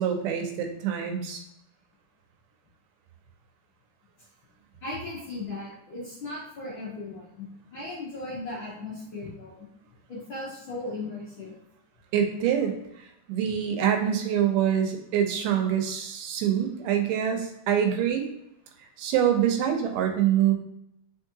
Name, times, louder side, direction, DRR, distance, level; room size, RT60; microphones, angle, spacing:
voice 1, 0.0-1.4 12.1-12.8 13.3-18.3 19.0-20.5, right 9 dB, 80° right, 4 dB, 2.3 m, -25 dB
voice 2, 4.8-7.5 7.7-9.6 10.1-11.5, left 2 dB, 75° left, -7 dB, 1.1 m, -37 dB
4.6 x 4.2 x 2.7 m, 0.81 s
omnidirectional pair, 4.0 m